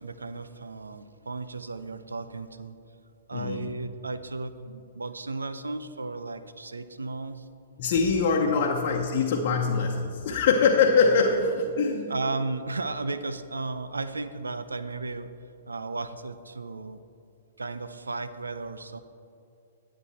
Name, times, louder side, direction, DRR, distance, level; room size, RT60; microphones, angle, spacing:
voice 1, 0.0-2.8 3.3-7.5 8.4-8.7 12.1-15.3 15.7-17.0 17.6-19.0, right 3 dB, 90° right, 11 dB, 0.5 m, -34 dB
voice 2, 3.3-3.7 7.8-12.1, left 5 dB, 50° left, 0 dB, 0.9 m, -23 dB
11.0 x 8.3 x 4.2 m, 2.6 s
hypercardioid pair, 120°, 0 cm